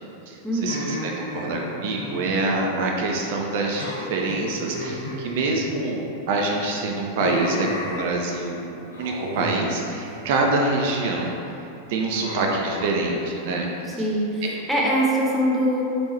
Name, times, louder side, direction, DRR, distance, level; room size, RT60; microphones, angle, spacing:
voice 1, 0.3-11.3 11.9-13.7 13.9-14.1, right 2 dB, 50° right, 0 dB, 0.4 m, -26 dB
sound 1, 0.6-3.1 3.3-3.5 3.8-6.1 6.5-8.5 8.9-9.5 9.9-10.4 10.8-11.2 12.2-12.9, left 1 dB, 75° left, 0.5 m, -33 dB
voice 2, 12.0-12.4 14.0-15.8, equal, ahead, -6 dB, 0.6 m, -23 dB
3.5 x 2.9 x 3.0 m, 2.8 s
figure-of-eight pair, 90°, 0 cm